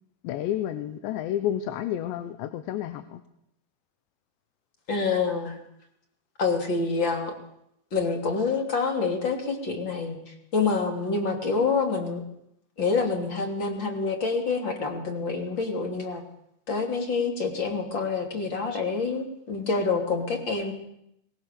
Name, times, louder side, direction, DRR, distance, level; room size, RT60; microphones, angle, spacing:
voice 1, 0.2-3.2, left 11 dB, 85° left, 11 dB, 3.3 m, -30 dB
voice 2, 4.9-5.6 6.4-7.3 7.9-12.2 12.8-16.2 16.7-20.7, left 4 dB, 30° left, 5 dB, 3.3 m, -27 dB
22.5 x 21.0 x 6.9 m, 0.77 s
omnidirectional pair, 5.0 m